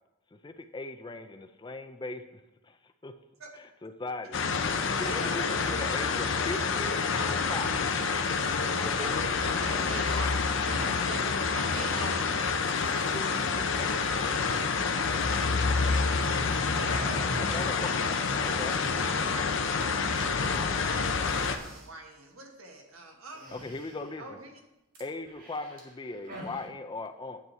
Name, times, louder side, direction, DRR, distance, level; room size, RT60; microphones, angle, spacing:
voice 1, 0.3-3.1 3.5-4.4 5.0-7.9 13.1-13.9 17.4-17.9 18.4-18.8 23.5-24.4 25.0-27.4, left 2 dB, 20° left, 8 dB, 0.4 m, -39 dB
sound 1, 4.3-21.6, left 5 dB, 65° left, 0.7 m, -28 dB
sound 2, 8.3-8.6 8.9-11.1 12.6-13.2 13.9-16.4 16.6-18.6 19.0-19.7 20.0-20.1 20.4-20.7 20.9-21.9 23.3-24.3 24.9-26.7, right 1 dB, 45° right, 2.1 m, -46 dB
voice 2, 8.7-12.6, right 3 dB, 65° right, 3 dB, 1.2 m, -41 dB
voice 3, 14.5-17.1 18.3-18.6 18.9-19.7 20.2-23.6 24.2-24.5, right 2 dB, 90° right, 2 dB, 1.5 m, -48 dB
9.6 x 7.8 x 4.1 m, 0.95 s
head